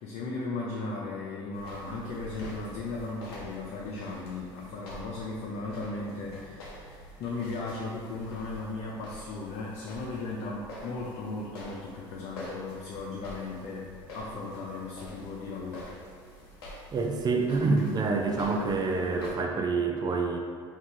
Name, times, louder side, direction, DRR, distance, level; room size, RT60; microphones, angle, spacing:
voice 1, 0.0-15.9, left 3 dB, 60° left, -4 dB, 0.5 m, -36 dB
sound 1, 1.5-19.3, equal, 80° left, 0.8 m, -46 dB
voice 2, 16.9-20.4, right 3 dB, 30° right, 2 dB, 0.5 m, -27 dB
3.1 x 2.4 x 3.7 m, 2.1 s
hypercardioid pair, 75°, 13 cm